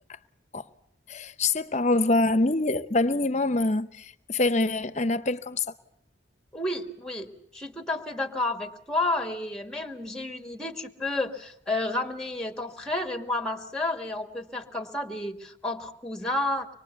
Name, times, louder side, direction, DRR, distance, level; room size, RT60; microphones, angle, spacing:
voice 1, 1.1-5.6, left 2 dB, 40° left, 0.9 m, -25 dB
voice 2, 6.5-16.7, left 2 dB, 5° left, 1.6 m, -31 dB
25.0 x 21.5 x 8.3 m
head